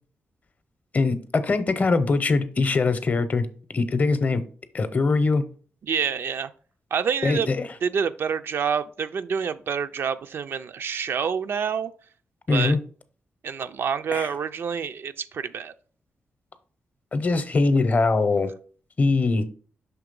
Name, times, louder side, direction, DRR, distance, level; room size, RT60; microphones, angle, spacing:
voice 1, 0.9-3.5 3.7-4.4 4.7-5.4 7.2-7.7 12.5-12.8 14.1-14.3 17.1-18.5 19.0-19.4, left 3 dB, 40° left, 0.7 m, -22 dB
voice 2, 5.8-6.5 6.9-7.5 7.8-11.9 12.5-12.8 13.4-15.7, right 6 dB, 65° right, 0.4 m, -27 dB
5.9 x 3.1 x 5.2 m
cardioid pair, 100°, 4 cm